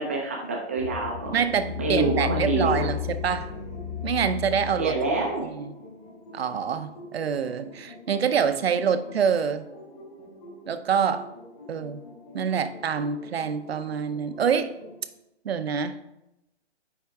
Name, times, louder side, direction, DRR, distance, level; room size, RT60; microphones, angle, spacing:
voice 1, 0.0-1.4 1.8-2.9 4.8-5.5, right 3 dB, 15° right, -1 dB, 0.5 m, -27 dB
sound 1, 0.8-15.0, left 8 dB, 35° left, 1.9 m, -37 dB
voice 2, 1.3-3.5 4.0-4.9 5.5-5.7 6.3-9.7 10.7-11.3 11.7-12.0 12.3-14.7 15.4-16.0, right 7 dB, 65° right, 11 dB, 0.7 m, -26 dB
9.6 x 3.7 x 3.5 m, 0.87 s
hypercardioid pair, 160°, 33 cm